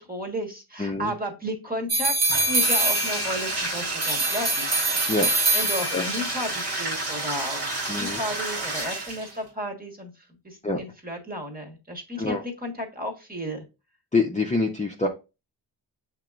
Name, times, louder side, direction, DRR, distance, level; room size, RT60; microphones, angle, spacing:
voice 1, 0.1-4.7 5.5-10.1 10.4-13.6, equal, 20° right, 2 dB, 1.4 m, -33 dB
voice 2, 0.8-1.1 5.1-5.6 5.9-6.0 7.9-8.2 10.6-10.8 12.2-12.4 14.1-15.1, left 3 dB, 15° left, 1 dB, 0.6 m, -26 dB
sound 1, 1.9-3.5 4.0-6.2, right 2 dB, 35° right, 0.9 m, -24 dB
Bathtub (filling or washing), 2.2-9.4, right 2 dB, 60° right, 1.6 m, -30 dB
7.3 x 2.9 x 2.4 m, 0.28 s
cardioid pair, 85°, 44 cm